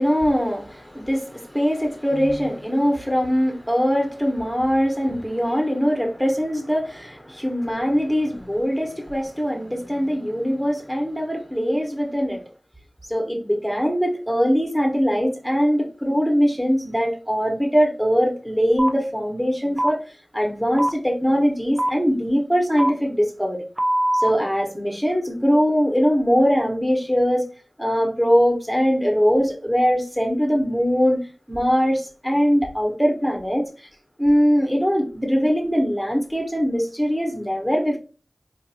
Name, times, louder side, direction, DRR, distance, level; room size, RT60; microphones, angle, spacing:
voice 1, 0.0-12.4 13.1-20.0 20.3-23.6 24.1-27.4 27.8-31.2 31.5-33.7 34.2-38.0, equal, 5° right, 0.9 m, -21 dB
sound 1, 18.8-18.9 19.8-19.9 20.8-20.9 21.8-21.9 22.8-22.9 23.8-24.3, right 1 dB, 25° right, 0.4 m, -21 dB
4.0 x 2.6 x 2.6 m
wide cardioid pair, 55°, 0 cm